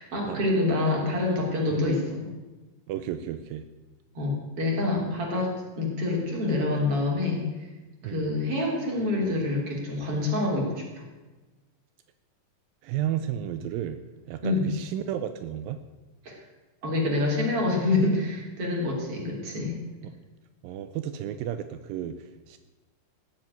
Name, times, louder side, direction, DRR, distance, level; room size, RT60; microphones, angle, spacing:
voice 1, 0.0-2.3 4.2-7.4 8.0-10.8 14.4-14.7 16.3-16.4 16.8-19.8, left 2 dB, 40° right, -1 dB, 4.3 m, -26 dB
voice 2, 2.9-3.7 8.0-8.3 12.8-14.0 14.3-15.8 19.4-19.5 20.0-20.1 20.6-22.6, right 10 dB, 85° right, 9 dB, 2.5 m, -33 dB
18.0 x 7.5 x 9.3 m, 1.2 s
omnidirectional pair, 4.0 m